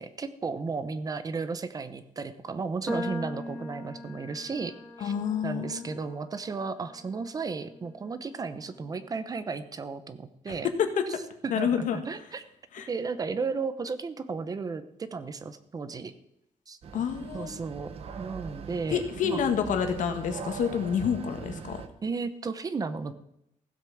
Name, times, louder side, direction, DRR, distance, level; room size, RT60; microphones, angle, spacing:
voice 1, 0.0-4.7 5.0-5.1 5.4-10.7 11.4-12.4 12.9-16.1 16.7-16.8 17.3-17.9 18.2-19.4 22.0-23.1, right 4 dB, 30° right, 12 dB, 0.8 m, -34 dB
sound 1, 2.9-9.2, left 1 dB, 5° right, 2.0 m, -41 dB
voice 2, 5.0-5.9 10.5-10.6 10.8-10.9 11.5-12.0 12.7-12.9 16.9-17.5 18.9-21.8, left 7 dB, 80° left, 7 dB, 1.9 m, -28 dB
sound 2, 16.8-21.9, right 6 dB, 50° right, 1.2 m, -41 dB
15.5 x 8.1 x 7.1 m, 0.79 s
wide cardioid pair, 180°, 13 cm